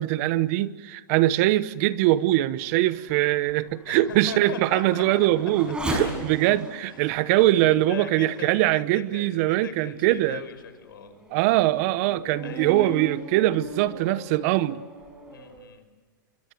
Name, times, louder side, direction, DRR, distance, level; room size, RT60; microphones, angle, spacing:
voice 1, 0.0-10.4 11.3-14.8, right 16 dB, 45° right, 1.0 m, -22 dB
Race car auto racing / Accelerating revving vroom, 1.7-9.5 10.1-10.2 10.8-15.6, equal, 10° right, 5.4 m, -38 dB
voice 2, 3.9-5.0 6.9-11.1 12.4-13.0 15.3-15.9, left 7 dB, 85° left, 5.3 m, -40 dB
24.5 x 24.0 x 7.9 m
hypercardioid pair, 140°, 11 cm